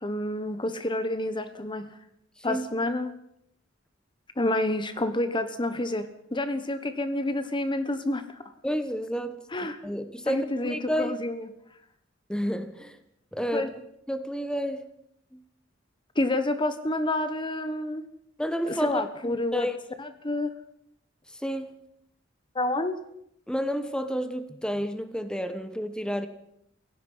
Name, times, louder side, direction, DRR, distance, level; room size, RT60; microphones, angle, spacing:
voice 1, 0.0-1.9 2.4-3.1 4.4-8.4 9.5-9.8 10.3-11.5 13.5-13.7 16.1-18.0 18.7-19.7 20.0-20.5 22.5-23.0, left 1 dB, 25° left, 10 dB, 1.2 m, -29 dB
voice 2, 8.6-9.4 9.8-11.2 12.3-13.0 13.3-13.7 14.1-14.8 15.3-15.4 18.4-19.8 21.3-21.7 23.5-26.3, equal, 5° left, 10 dB, 1.3 m, -30 dB
28.0 x 16.5 x 5.6 m, 0.76 s
head